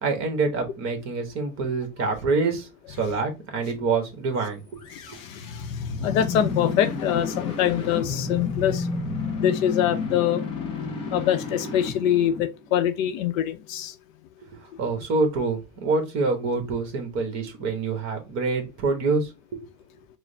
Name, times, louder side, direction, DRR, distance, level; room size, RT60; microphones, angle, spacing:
voice 1, 0.0-4.8 5.1-5.2 14.8-19.3, right 4 dB, 35° right, 1.4 m, -26 dB
sound 1, 4.8-12.9, left 4 dB, 15° left, 0.3 m, -31 dB
voice 2, 4.9-8.9 9.4-10.4 11.1-13.9, left 10 dB, 60° left, 0.7 m, -24 dB
4.8 x 2.1 x 3.3 m
supercardioid pair, 135°, 46 cm